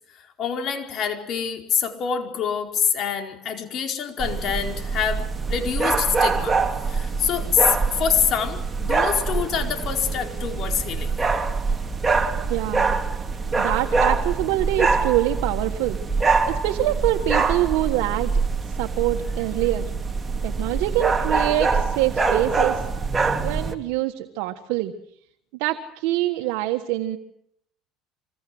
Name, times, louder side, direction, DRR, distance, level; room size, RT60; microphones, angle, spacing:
voice 1, 0.0-6.6 6.9-11.1, left 8 dB, 50° left, 5 dB, 4.6 m, -26 dB
sound 1, 4.2-23.7, right 4 dB, 20° right, 3.0 m, -24 dB
voice 2, 12.5-13.0 13.6-16.0 16.5-18.3 18.7-19.9 20.4-22.8 23.4-24.9 25.6-27.2, right 15 dB, 80° right, 5 dB, 1.5 m, -25 dB
26.5 x 22.0 x 7.8 m, 0.72 s
supercardioid pair, 105°, 0 cm